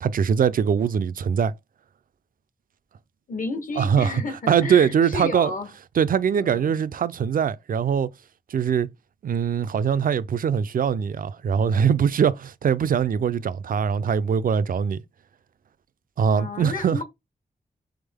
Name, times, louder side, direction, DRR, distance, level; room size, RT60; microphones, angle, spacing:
voice 1, 0.0-1.5 3.8-4.2 4.5-5.5 6.0-8.1 8.5-8.9 9.2-15.0 16.2-17.0, right 7 dB, 65° right, 0.4 m, -22 dB
voice 2, 3.3-5.7 6.3-6.8 16.3-17.0, left 3 dB, 60° left, 1.1 m, -32 dB
3.6 x 3.5 x 3.5 m
wide cardioid pair, 80°, 15 cm